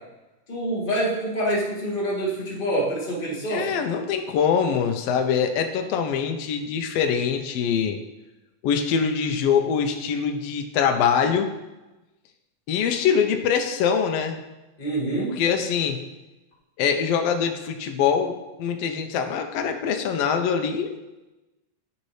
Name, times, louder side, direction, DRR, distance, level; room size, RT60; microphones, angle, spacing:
voice 1, 0.5-3.7 14.8-15.4, right 1 dB, 25° left, -5 dB, 1.2 m, -26 dB
voice 2, 3.5-8.0 8.6-11.5 12.7-14.4 15.3-16.0 16.8-20.9, left 7 dB, 80° left, 5 dB, 1.4 m, -23 dB
12.0 x 4.3 x 3.2 m, 1.0 s
omnidirectional pair, 3.7 m